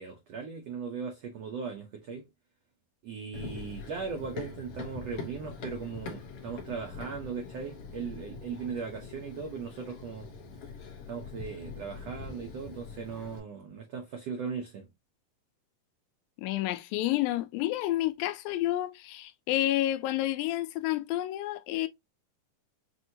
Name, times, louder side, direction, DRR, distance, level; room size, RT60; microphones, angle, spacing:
voice 1, 0.0-2.3 3.0-10.3 11.1-14.9, right 5 dB, 75° right, 1.5 m, -38 dB
Run, 3.3-13.4, left 4 dB, 65° left, 1.5 m, -43 dB
voice 2, 16.4-21.9, left 14 dB, 90° left, 2.4 m, -30 dB
6.1 x 2.6 x 2.7 m
omnidirectional pair, 4.1 m